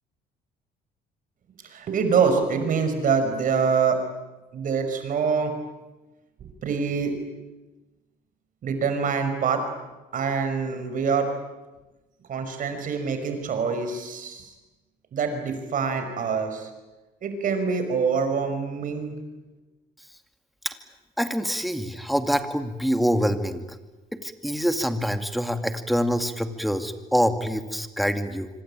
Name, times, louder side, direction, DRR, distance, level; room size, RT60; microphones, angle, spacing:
voice 1, 1.7-4.0 4.5-5.5 6.4-7.2 8.6-9.7 10.1-11.3 12.3-14.5 15.1-16.7 17.2-19.2, right 5 dB, 50° right, 7 dB, 5.7 m, -25 dB
voice 2, 21.2-23.6 24.1-28.5, equal, ahead, 8 dB, 2.3 m, -25 dB
26.0 x 25.5 x 8.9 m, 1.1 s
cardioid pair, 110°, 17 cm